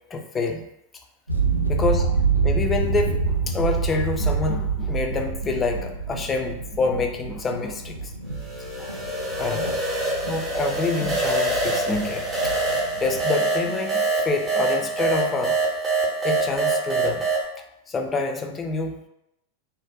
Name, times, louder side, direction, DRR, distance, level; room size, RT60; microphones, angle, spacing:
voice 1, 0.1-0.6 1.7-8.1 8.8-8.9 9.4-9.8 10.2-12.5 13.0-15.6 16.2-17.2 17.9-19.0, left 3 dB, 20° left, 3 dB, 0.3 m, -27 dB
sound 1, 1.3-13.3, right 5 dB, 85° right, 0.3 m, -27 dB
sound 2, 8.4-17.5, right 2 dB, 20° right, 0.6 m, -25 dB
2.4 x 2.1 x 2.4 m, 0.82 s
figure-of-eight pair, 90°, 0 cm